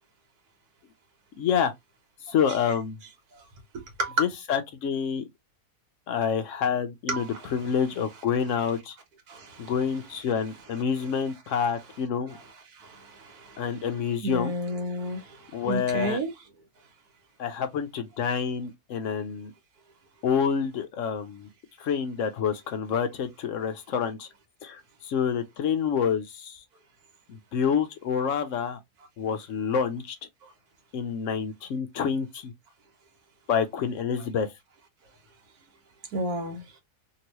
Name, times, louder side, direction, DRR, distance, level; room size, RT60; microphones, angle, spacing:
voice 1, 1.4-1.7 2.3-3.0 4.2-5.2 6.1-8.9 9.6-12.4 13.6-14.5 15.5-16.2 17.4-19.5 20.2-21.5 21.8-24.3 24.6-26.6 27.3-28.8 29.2-30.2 30.9-32.5 33.5-34.5, left 7 dB, 70° left, 0.8 m, -28 dB
voice 2, 7.1-7.5 9.3-9.7 12.3-12.4 12.7-13.7 14.2-16.3 30.4-30.5 36.1-36.6, right 1 dB, 75° right, 1.4 m, -32 dB
2.9 x 2.8 x 2.9 m
omnidirectional pair, 1.7 m